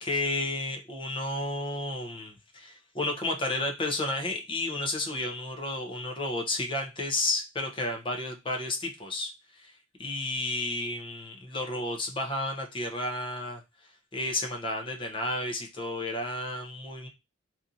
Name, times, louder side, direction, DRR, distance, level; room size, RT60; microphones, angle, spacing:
voice 1, 0.0-9.7 10.0-13.6 14.1-17.1, left 2 dB, 25° left, 3 dB, 0.6 m, -32 dB
2.8 x 2.5 x 2.5 m, 0.24 s
head